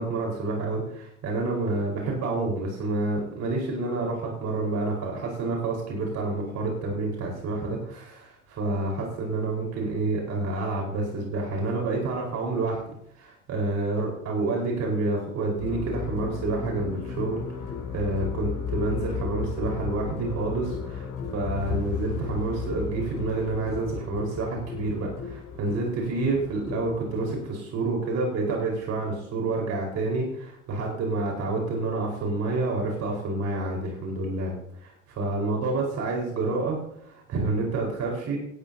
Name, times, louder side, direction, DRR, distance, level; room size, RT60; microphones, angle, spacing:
voice 1, 0.0-12.8 13.1-34.5 34.8-38.4, right 3 dB, 45° right, -1 dB, 4.6 m, -28 dB
sound 1, 15.6-27.5, left 6 dB, 50° left, 6.4 m, -34 dB
17.0 x 13.0 x 2.8 m, 0.74 s
figure-of-eight pair, 65°, 37 cm